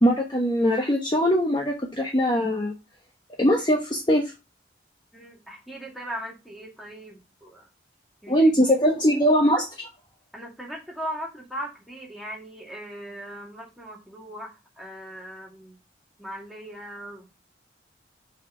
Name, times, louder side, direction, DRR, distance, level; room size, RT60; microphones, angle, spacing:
voice 1, 0.0-2.7 3.4-4.3 8.3-9.9, equal, 25° left, 0 dB, 1.0 m, -21 dB
voice 2, 5.1-7.7 8.2-8.5 10.3-15.8 16.2-17.4, equal, ahead, -3 dB, 2.1 m, -39 dB
5.9 x 4.4 x 5.5 m, 0.26 s
head